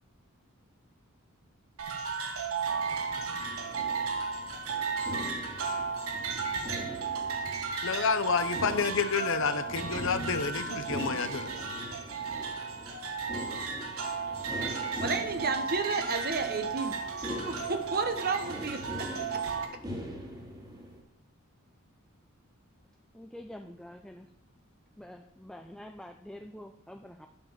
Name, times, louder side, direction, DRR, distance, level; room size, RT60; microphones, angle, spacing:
sound 1, 1.8-19.7, right 5 dB, 75° right, 1.5 m, -35 dB
sound 2, 2.6-21.0, equal, 20° right, 2.1 m, -42 dB
voice 1, 7.8-11.5, left 5 dB, 65° left, 11 dB, 0.8 m, -29 dB
voice 2, 14.7-17.0 17.4-19.4, right 4 dB, 45° right, 7 dB, 1.2 m, -32 dB
voice 3, 23.1-24.3 25.0-27.3, left 1 dB, 5° left, 6 dB, 0.4 m, -46 dB
10.5 x 5.2 x 7.3 m, 0.75 s
head